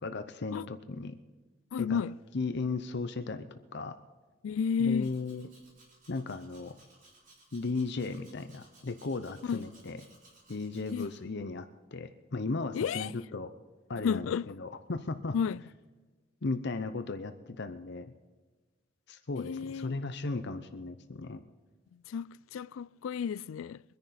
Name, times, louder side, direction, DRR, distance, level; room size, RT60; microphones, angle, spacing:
voice 1, 0.0-1.1 1.8-2.0 2.3-4.0 4.8-5.5 6.1-6.7 7.5-10.0 10.5-13.5 13.9-14.3 14.6-15.4 16.4-18.1 19.1-21.4, left 3 dB, 60° left, 0.7 m, -36 dB
voice 2, 1.7-2.2 4.4-5.1 9.4-9.7 10.9-11.1 12.7-13.1 14.0-14.5 15.3-15.6 19.4-20.1 21.9-23.8, left 6 dB, 75° left, 0.3 m, -32 dB
Domestic sounds home sounds, 5.0-11.2, right 2 dB, 40° right, 4.0 m, -60 dB
24.5 x 10.5 x 4.2 m
head